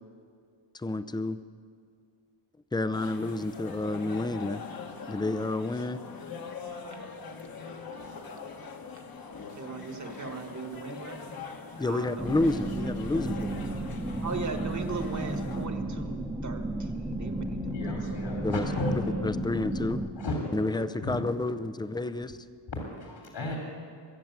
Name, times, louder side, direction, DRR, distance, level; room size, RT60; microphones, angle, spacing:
voice 1, 0.7-1.4 2.7-4.6 5.1-6.0 11.8-13.9 18.4-18.6 19.0-20.0 20.5-22.4, left 2 dB, 10° left, 12 dB, 0.5 m, -30 dB
sound 1, 2.9-15.7, left 5 dB, 50° left, 1.5 m, -42 dB
voice 2, 9.5-11.2 11.8-12.3 14.2-18.2, right 4 dB, 40° right, 5 dB, 1.7 m, -38 dB
sound 2, 12.2-20.1, right 1 dB, 10° right, 1.1 m, -33 dB
voice 3, 17.7-19.2 20.2-21.2 22.7-23.6, left 1 dB, 65° left, -1 dB, 3.0 m, -34 dB
22.0 x 7.6 x 8.1 m, 2.2 s
cardioid pair, 90°, 46 cm